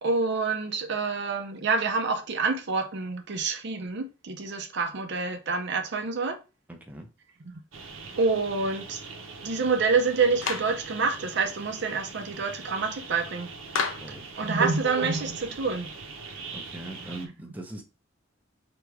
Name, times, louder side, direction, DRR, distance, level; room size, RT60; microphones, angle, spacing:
voice 1, 0.0-6.4 7.5-7.6 8.2-9.0 9.4-13.5 14.4-15.9, right 4 dB, 60° right, 0.6 m, -27 dB
voice 2, 6.7-7.1 14.0-14.2 16.5-17.8, right 2 dB, 10° right, 0.7 m, -40 dB
sound 1, 7.7-17.3, right 4 dB, 85° right, 0.9 m, -40 dB
Clapping, 10.4-10.8 13.7-14.2, left 5 dB, 90° left, 0.8 m, -29 dB
3.5 x 2.9 x 4.5 m
head